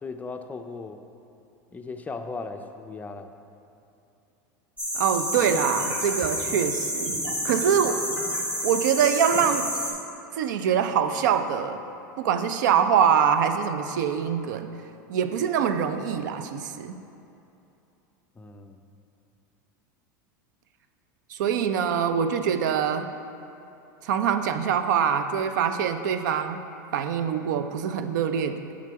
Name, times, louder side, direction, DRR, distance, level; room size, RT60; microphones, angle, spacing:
voice 1, 0.0-1.0 1.7-3.3 18.4-18.8, left 3 dB, 15° left, 6 dB, 0.4 m, -37 dB
sound 1, 4.8-9.9, equal, 10° right, 1.4 m, -29 dB
voice 2, 4.9-8.0 8.6-9.8 10.4-11.8 12.2-14.7 15.1-16.9 21.3-23.1 24.0-26.6 26.9-28.6, right 8 dB, 80° right, 9 dB, 0.4 m, -24 dB
7.4 x 3.7 x 5.6 m, 2.8 s
hypercardioid pair, 105°, 10 cm